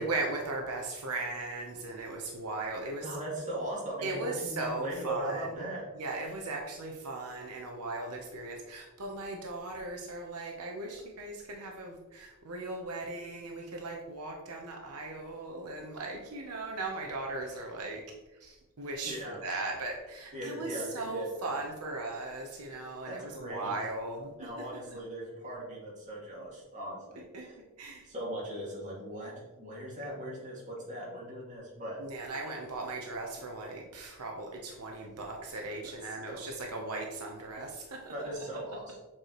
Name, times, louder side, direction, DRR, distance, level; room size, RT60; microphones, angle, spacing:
voice 1, 0.0-3.2 4.0-5.6 5.9-18.0 18.4-24.5 24.9-25.0 27.3-27.5 27.8-28.1 32.0-38.1, right 2 dB, 80° right, 1 dB, 0.9 m, -38 dB
voice 2, 3.0-5.9 19.0-19.4 20.3-21.3 23.0-23.7 24.3-27.6 28.0-32.0 32.5-32.6 36.3-36.4 38.1-39.0, right 1 dB, 35° right, -5 dB, 2.1 m, -39 dB
7.3 x 4.8 x 3.0 m, 1.1 s
head